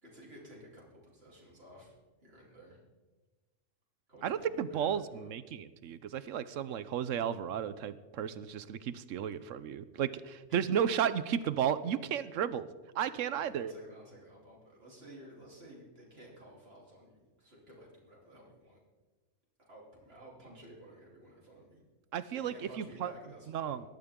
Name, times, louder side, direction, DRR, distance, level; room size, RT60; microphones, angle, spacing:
voice 1, 0.0-1.9 2.2-2.8 4.1-5.3 13.2-18.8 19.6-21.8 22.3-23.8, right 1 dB, 50° right, -4 dB, 4.1 m, -54 dB
voice 2, 4.2-12.7 12.9-13.7 22.1-23.1 23.5-23.8, right 9 dB, 85° right, 15 dB, 1.1 m, -33 dB
19.0 x 13.5 x 3.7 m, 1.2 s
omnidirectional pair, 1.3 m